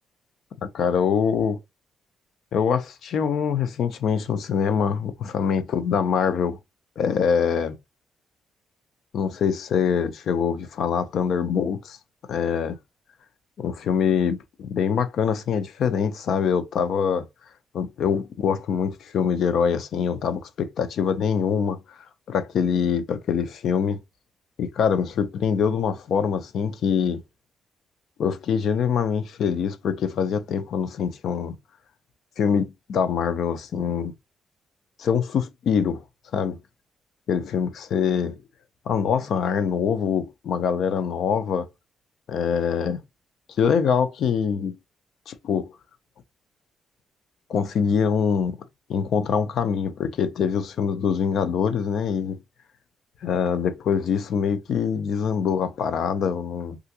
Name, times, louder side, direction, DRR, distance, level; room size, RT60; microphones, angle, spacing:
voice 1, 0.6-1.6 2.5-6.6 7.0-7.8 9.1-12.0 12.3-12.8 13.6-17.3 17.7-21.8 22.3-24.0 24.6-27.2 28.2-31.5 32.4-34.1 35.0-36.0 36.3-36.6 37.3-38.4 38.9-41.7 42.3-43.0 43.6-44.8 45.3-45.7 47.5-48.6 48.9-52.4 53.2-56.8, left 7 dB, 65° left, 0.5 m, -24 dB
3.3 x 2.5 x 2.8 m
cardioid pair, 125°, 0 cm